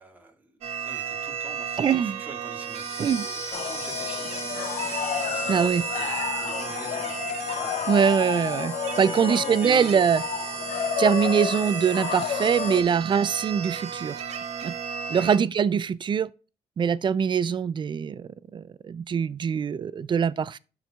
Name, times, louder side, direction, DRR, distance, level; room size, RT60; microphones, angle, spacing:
voice 1, 0.0-4.4 5.2-7.3 7.6-8.1 9.0-10.3 15.1-15.3, right 2 dB, 15° right, 2.3 m, -44 dB
sound 1, 0.6-15.4, right 7 dB, 75° right, 1.4 m, -34 dB
voice 2, 1.8-2.2 3.0-3.3 5.5-5.8 7.9-10.2 11.0-14.2 14.6-14.7 15.1-16.3 16.8-20.6, right 7 dB, 45° right, 0.4 m, -23 dB
sound 2, 2.5-6.6, left 1 dB, 25° left, 2.7 m, -39 dB
sound 3, 3.5-12.8, left 9 dB, 80° left, 0.7 m, -31 dB
12.5 x 4.6 x 2.4 m
cardioid pair, 90°, 11 cm